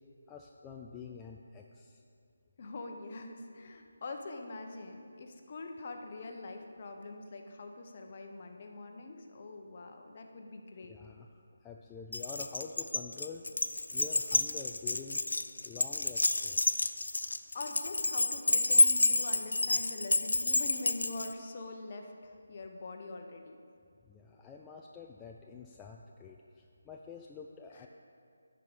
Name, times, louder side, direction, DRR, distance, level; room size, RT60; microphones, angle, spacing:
voice 1, 0.3-2.0 10.8-15.2 15.6-16.8 24.0-27.9, left 5 dB, 10° left, 0 dB, 0.3 m, -47 dB
voice 2, 2.6-11.0 17.5-23.6 27.7-27.9, left 2 dB, 40° left, 4 dB, 0.9 m, -44 dB
Keys jangling, 12.1-21.3, left 2 dB, 80° left, 0.4 m, -29 dB
11.0 x 4.8 x 5.4 m, 2.4 s
figure-of-eight pair, 160°, 0 cm